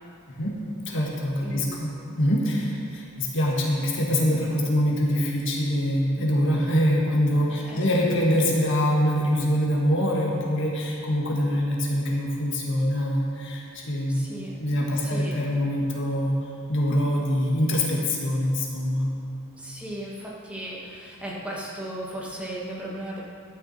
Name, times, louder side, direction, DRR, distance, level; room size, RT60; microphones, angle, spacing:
voice 1, 0.9-1.9 2.2-14.3 14.6-16.4 16.7-19.1, equal, 60° left, -2 dB, 1.7 m, -24 dB
voice 2, 1.4-1.8 7.5-7.9 14.1-14.6 15.0-15.3 19.6-23.2, right 1 dB, 5° right, -5 dB, 1.8 m, -36 dB
12.5 x 9.9 x 4.3 m, 2.5 s
head